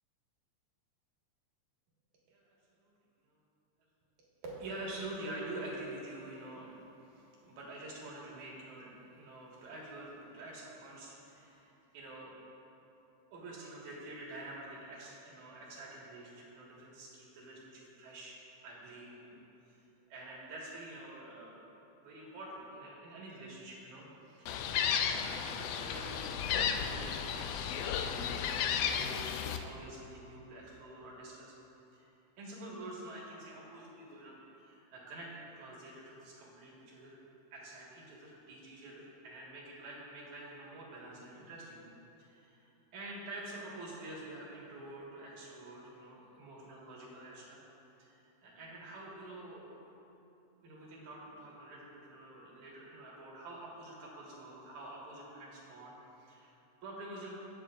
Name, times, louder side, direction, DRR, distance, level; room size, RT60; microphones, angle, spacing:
voice 1, 4.4-12.3 13.3-18.3 18.6-19.4 19.7-19.8 20.1-24.8 25.1-31.5 31.9-32.1 32.4-37.2 37.5-41.8 42.2-47.6 48.0-49.8 50.6-57.3, right 2 dB, 75° right, -5 dB, 3.1 m, -47 dB
Gull seagull, 24.5-29.6, left 8 dB, 85° left, 1.5 m, -33 dB
18.5 x 7.2 x 2.5 m, 2.9 s
omnidirectional pair, 3.4 m